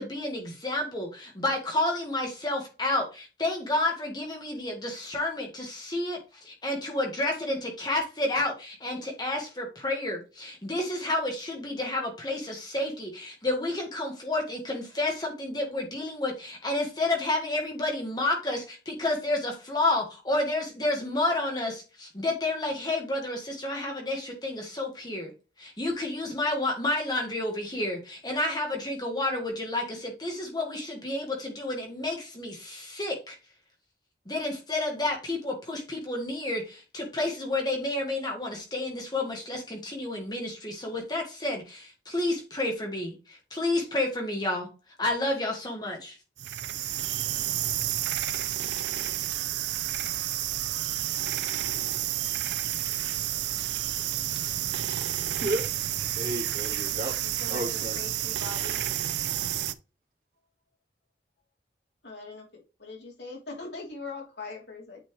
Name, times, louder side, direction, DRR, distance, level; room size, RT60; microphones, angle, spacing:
voice 1, 0.0-25.3 25.6-33.4 34.2-44.7 45.0-46.2, left 2 dB, 20° left, 1 dB, 1.7 m, -30 dB
sound 1, 46.4-59.7, right 12 dB, 75° right, 0.5 m, -30 dB
voice 2, 56.1-58.0 58.9-59.0, equal, 45° right, -1 dB, 3.0 m, -33 dB
voice 3, 57.9-58.8 62.0-62.4 62.8-65.0, left 3 dB, 70° left, -1 dB, 3.3 m, -41 dB
9.0 x 4.5 x 3.2 m, 0.30 s
head